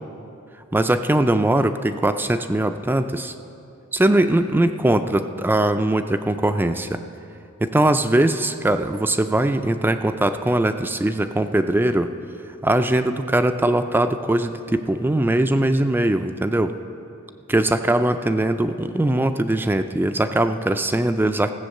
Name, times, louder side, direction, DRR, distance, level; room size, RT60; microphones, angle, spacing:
voice 1, 0.7-3.3 3.9-7.0 7.6-12.1 12.6-16.7 17.5-21.5, right 1 dB, 10° right, 9 dB, 0.3 m, -21 dB
15.5 x 7.8 x 6.5 m, 2.8 s
head